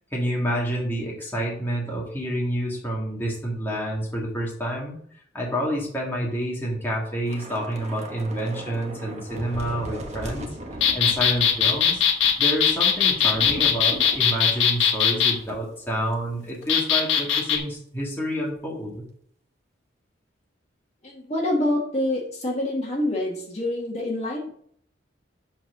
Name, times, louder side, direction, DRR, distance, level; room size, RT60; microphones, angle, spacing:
voice 1, 0.1-5.0 5.3-10.5 10.9-12.0 12.4-19.0, equal, 10° left, -4 dB, 2.0 m, -28 dB
Thunder / Rain, 7.3-15.9 16.1-16.3 16.7-16.9, right 1 dB, 35° right, 1.1 m, -39 dB
sound 1, 10.8-15.3 16.7-17.6, left 8 dB, 70° left, 1.1 m, -20 dB
voice 2, 21.0-24.5, left 1 dB, 35° left, -2 dB, 1.8 m, -26 dB
7.5 x 4.5 x 6.0 m, 0.63 s
head